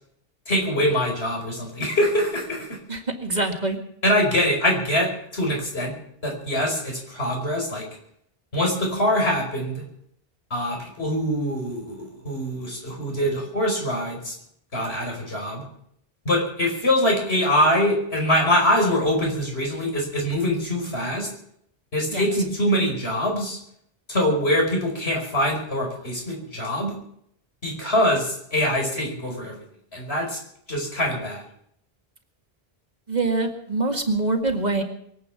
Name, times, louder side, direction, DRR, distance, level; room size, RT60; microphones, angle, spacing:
voice 1, 0.5-2.8 4.0-5.9 6.2-7.9 8.5-9.8 10.5-14.3 14.7-15.6 16.3-21.3 21.9-23.6 24.1-26.9 27.6-29.6 29.9-30.4 30.7-31.4, left 1 dB, 85° left, 0 dB, 5.5 m, -24 dB
voice 2, 2.9-3.8 22.1-22.2 33.1-34.8, right 2 dB, 45° right, 4 dB, 2.0 m, -24 dB
23.0 x 8.6 x 7.3 m, 0.70 s
omnidirectional pair, 1.0 m